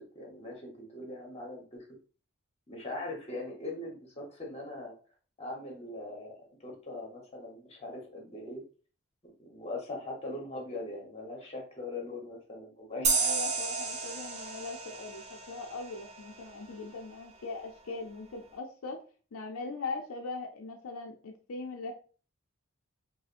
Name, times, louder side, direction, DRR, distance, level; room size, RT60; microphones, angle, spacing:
voice 1, 0.0-1.9 2.7-4.9 5.4-6.3 6.6-8.6 9.4-13.1, left 2 dB, 30° left, 1 dB, 1.0 m, -41 dB
voice 2, 13.0-19.0 19.3-21.9, left 3 dB, 80° left, 3 dB, 0.5 m, -40 dB
sound 1, 13.0-16.4, right 4 dB, 30° right, 0.5 m, -32 dB
4.8 x 2.1 x 2.5 m, 0.39 s
head